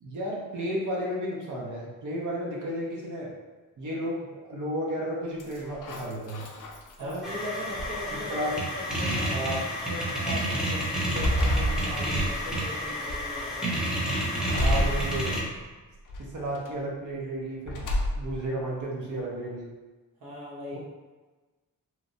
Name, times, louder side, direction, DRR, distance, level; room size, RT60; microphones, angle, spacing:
voice 1, 0.0-3.3 3.8-6.5 7.0-7.2 8.1-8.6 9.3-9.6 14.6-15.5 16.2-17.9 18.2-19.7 20.7-20.8, right 1 dB, 60° right, -3 dB, 0.6 m, -33 dB
sound 1, 5.4-7.3 7.8-8.5 9.3-9.4 9.8-10.2 10.7-12.6 13.1-13.6 14.5-15.6 16.1-16.7 17.6-18.5, equal, 65° left, 0.5 m, -30 dB
voice 2, 7.0-8.4 9.0-13.7 20.2-20.8, equal, 90° right, -6 dB, 0.9 m, -40 dB
sound 2, 7.2-15.4, equal, ahead, 0.6 m, -30 dB
3.0 x 2.0 x 2.5 m, 1.3 s
wide cardioid pair, 100°, 34 cm